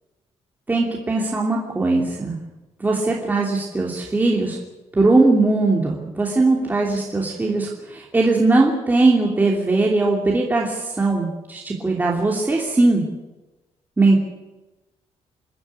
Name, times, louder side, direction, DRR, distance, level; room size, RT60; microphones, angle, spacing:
voice 1, 0.7-2.4 2.8-4.6 4.9-13.0 14.0-14.2, right 2 dB, 15° right, -2 dB, 2.9 m, -19 dB
27.0 x 12.5 x 9.9 m, 1.1 s
wide cardioid pair, 175°, 12 cm